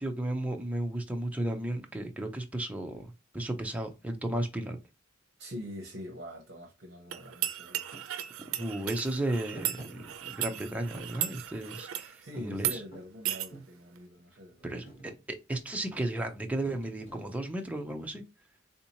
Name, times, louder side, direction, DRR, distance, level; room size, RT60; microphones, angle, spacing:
voice 1, 0.0-4.8 8.6-12.8 14.6-18.2, right 1 dB, 5° right, 0.5 m, -34 dB
voice 2, 5.4-7.8 12.2-14.8, equal, 55° right, 0.8 m, -44 dB
sound 1, 7.1-12.1 12.6-12.8 13.3-13.5, right 11 dB, 85° right, 0.4 m, -35 dB
Thump thud, 7.9-8.1 9.5-10.6 10.9-11.9 12.3-13.8 14.3-14.6 14.8-15.2 16.6-17.7, right 1 dB, 65° left, 2.2 m, -49 dB
3.6 x 2.8 x 2.8 m
head